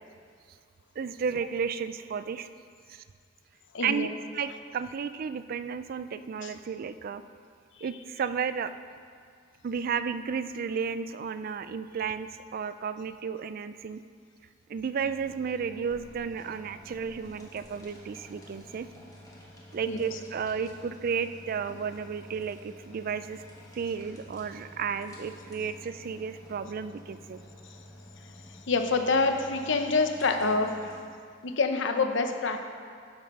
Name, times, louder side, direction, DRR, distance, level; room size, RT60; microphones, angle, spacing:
voice 1, 1.0-2.5 2.9-3.0 3.8-7.2 7.8-8.7 9.6-14.0 14.7-18.9 19.7-23.4 23.7-27.4, right 6 dB, 50° right, 12 dB, 0.3 m, -33 dB
voice 2, 3.7-4.1 6.4-6.5 19.9-20.2 28.5-30.9 31.4-32.7, left 3 dB, 70° left, 6 dB, 0.8 m, -27 dB
sound 1, 15.0-31.0, equal, 20° left, 1.4 m, -50 dB
12.0 x 5.3 x 5.4 m, 2.1 s
head